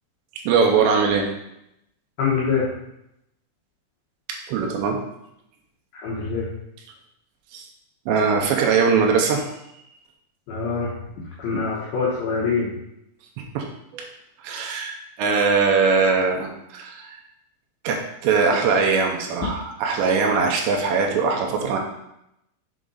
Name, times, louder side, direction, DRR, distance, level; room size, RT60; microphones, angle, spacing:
voice 1, 0.5-1.3 4.5-5.0 7.5-7.6 8.1-9.5 13.6-13.7 13.9-14.1 14.4-17.2 17.8-21.8, right 5 dB, 80° right, 1 dB, 2.6 m, -21 dB
voice 2, 2.2-2.7 5.9-6.5 10.5-10.9 11.4-12.7, left 5 dB, 85° left, -5 dB, 2.1 m, -24 dB
7.8 x 3.8 x 3.9 m, 0.82 s
omnidirectional pair, 5.9 m